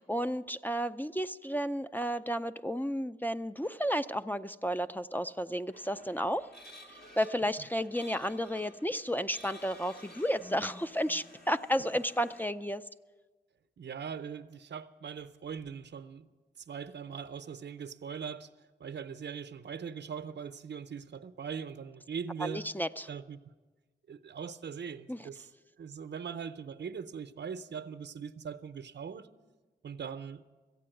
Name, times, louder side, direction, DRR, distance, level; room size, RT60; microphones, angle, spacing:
voice 1, 0.0-6.5 7.2-12.8 22.4-23.1 25.1-25.2, equal, 10° left, 0.4 m, -32 dB
sound 1, 5.7-12.5, equal, 60° left, 2.1 m, -54 dB
Whispering, 5.7-6.4 6.7-6.8 7.9-8.8 9.4-9.5 10.3-11.5, left 1 dB, 40° left, 2.0 m, -54 dB
voice 2, 13.8-16.3 16.6-18.5 18.8-22.6 23.1-23.4 24.1-25.5 25.8-29.3 29.8-30.4, right 6 dB, 75° right, 0.6 m, -41 dB
15.0 x 8.5 x 9.0 m
cardioid pair, 50°, 18 cm